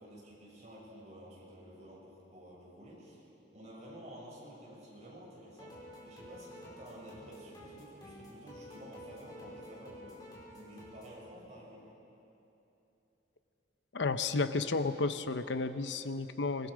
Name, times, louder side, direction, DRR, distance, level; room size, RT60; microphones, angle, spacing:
voice 1, 0.0-3.2 3.5-5.8 6.0-11.9, equal, 40° right, -5 dB, 6.7 m, -51 dB
sound 1, 5.5-11.1, equal, 25° left, 5.2 m, -51 dB
voice 2, 13.9-16.7, left 3 dB, 75° left, 10 dB, 0.8 m, -32 dB
26.0 x 20.0 x 5.1 m, 2.9 s
head